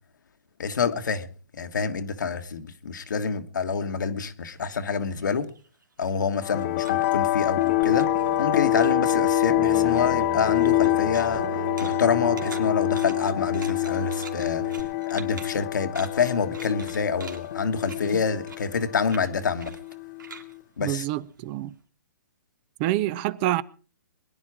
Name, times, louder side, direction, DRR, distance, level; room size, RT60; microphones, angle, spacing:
voice 1, 0.6-1.3 1.5-5.5 6.0-8.1 8.4-11.5 11.8-14.6 15.1-19.8 20.8-21.0, left 6 dB, 75° left, 1.6 m, -27 dB
sound 1, 4.6-8.5 8.8-9.5 9.9-21.7, right 5 dB, 90° right, 2.9 m, -47 dB
sound 2, 6.4-20.5, left 19 dB, 40° left, 0.8 m, -26 dB
sound 3, 7.8-14.8, right 9 dB, 60° right, 3.4 m, -35 dB
voice 2, 20.8-21.7 22.8-23.6, right 15 dB, 30° right, 0.7 m, -26 dB
22.0 x 10.5 x 4.9 m
hypercardioid pair, 140°, 10 cm